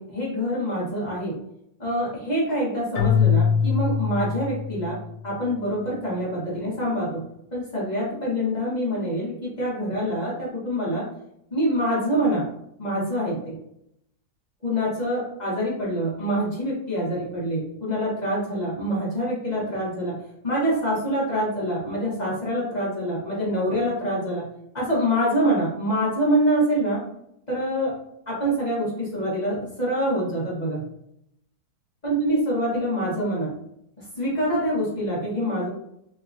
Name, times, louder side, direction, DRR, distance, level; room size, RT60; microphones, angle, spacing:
voice 1, 0.0-1.4 1.8-5.0 5.2-7.2 7.5-11.0 11.5-12.4 12.8-13.5 14.6-20.1 20.4-24.4 24.7-27.0 27.5-27.9 28.3-30.8 32.0-33.5 34.2-35.7, equal, 30° left, -7 dB, 1.1 m, -25 dB
Keyboard (musical), 2.9-5.2, left 7 dB, 80° left, 1.3 m, -22 dB
3.2 x 2.8 x 2.4 m, 0.75 s
omnidirectional pair, 1.6 m